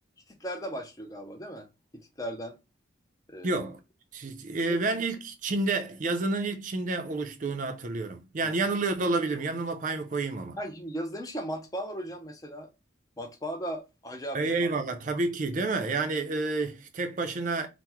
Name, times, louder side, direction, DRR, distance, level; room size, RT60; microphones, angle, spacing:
voice 1, 0.4-1.7 1.9-2.6 3.3-3.6 4.7-4.8 8.4-8.5 10.6-12.7 13.2-14.9, equal, 20° left, 0.4 m, -37 dB
voice 2, 3.4-3.8 4.1-10.6 14.3-17.7, right 3 dB, 40° right, 0.4 m, -29 dB
2.8 x 2.1 x 3.5 m
head